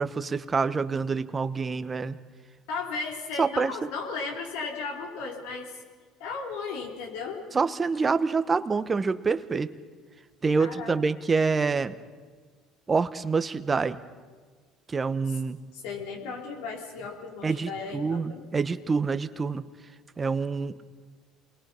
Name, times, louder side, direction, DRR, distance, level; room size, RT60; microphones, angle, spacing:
voice 1, 0.0-2.2 3.4-3.8 7.5-9.7 10.4-11.9 12.9-14.0 14.9-15.6 17.4-19.7 20.2-20.7, right 4 dB, 25° right, 12 dB, 1.1 m, -26 dB
voice 2, 2.7-5.7 6.2-7.4 10.6-11.0 15.3-15.4 15.7-18.4, left 4 dB, 80° left, 1 dB, 4.0 m, -35 dB
28.0 x 21.5 x 5.7 m, 1.5 s
supercardioid pair, 90°, 0 cm